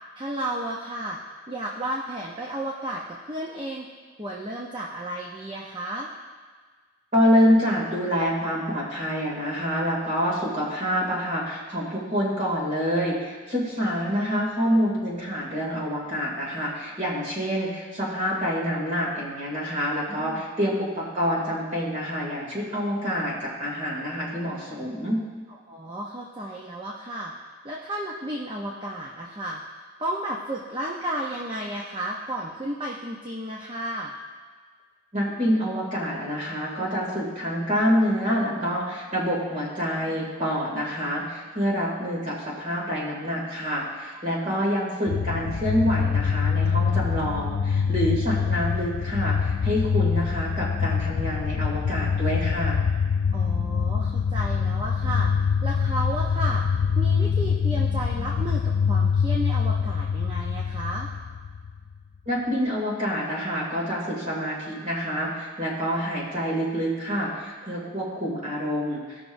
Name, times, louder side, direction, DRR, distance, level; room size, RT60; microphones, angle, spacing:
voice 1, 0.2-1.2 1.5-3.9 4.2-6.1 20.1-20.5 25.7-27.3 27.6-34.1 44.4-44.7 53.3-55.3 55.6-56.6 57.0-61.1, right 1 dB, 25° right, -2 dB, 0.7 m, -33 dB
voice 2, 7.1-25.2 35.1-52.8 62.3-69.3, equal, 40° right, -5 dB, 2.5 m, -27 dB
sound 1, 45.1-61.9, left 6 dB, 50° left, 0.3 m, -25 dB
16.5 x 6.1 x 2.6 m, 1.5 s
head